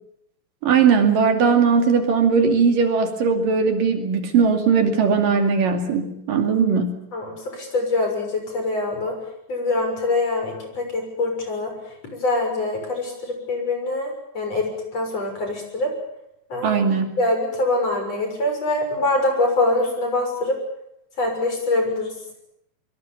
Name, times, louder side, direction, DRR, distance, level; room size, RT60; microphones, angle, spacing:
voice 1, 0.6-6.9 16.6-17.1, right 5 dB, 65° right, 6 dB, 4.0 m, -19 dB
voice 2, 7.1-9.1 9.5-11.7 12.1-15.9 16.5-16.8 17.2-20.6 21.2-22.1, left 2 dB, 40° left, 3 dB, 7.7 m, -24 dB
25.0 x 23.5 x 7.2 m, 0.78 s
omnidirectional pair, 4.2 m